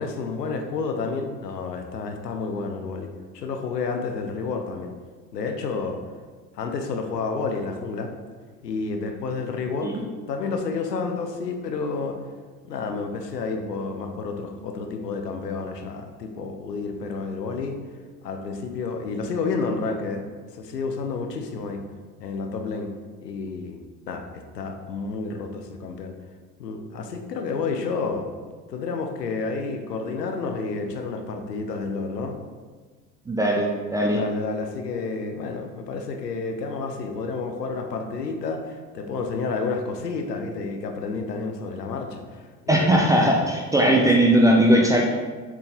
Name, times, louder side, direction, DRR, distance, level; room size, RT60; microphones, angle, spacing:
voice 1, 0.0-4.9 5.3-6.0 6.5-8.1 8.6-10.0 10.3-12.2 12.6-17.8 18.2-20.3 20.6-21.8 22.2-22.9 23.2-23.8 24.1-26.1 26.6-28.3 28.7-32.4 34.1-43.4 43.8-44.1, left 4 dB, 75° left, 4 dB, 0.8 m, -30 dB
voice 2, 33.3-34.2 42.7-45.0, right 1 dB, 10° right, -1 dB, 0.3 m, -19 dB
7.3 x 3.8 x 3.8 m, 1.4 s
figure-of-eight pair, 65°, 48 cm